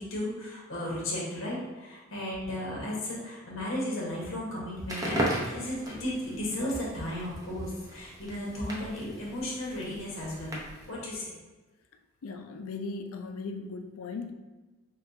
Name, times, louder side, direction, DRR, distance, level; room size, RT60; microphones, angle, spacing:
voice 1, 0.0-10.6 10.9-11.3, left 1 dB, 70° left, -5 dB, 1.4 m, -35 dB
Crackle, 4.8-10.9, right 1 dB, 15° right, 0.6 m, -37 dB
voice 2, 12.2-14.3, left 3 dB, 90° left, 6 dB, 0.4 m, -38 dB
5.5 x 2.3 x 2.7 m, 1.2 s
head